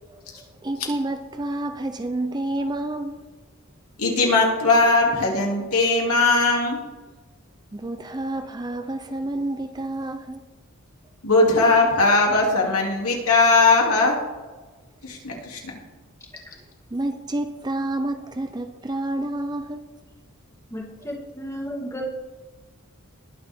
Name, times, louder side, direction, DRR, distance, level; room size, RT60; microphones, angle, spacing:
voice 1, 0.1-3.3 7.7-10.4 15.5-15.6 16.9-19.9, right 1 dB, 20° right, 0.5 m, -29 dB
voice 2, 4.0-6.8 11.2-14.2 15.0-15.7, left 3 dB, 80° left, 2.7 m, -19 dB
voice 3, 20.7-22.1, equal, 15° left, 2.2 m, -33 dB
20.5 x 7.0 x 3.6 m
head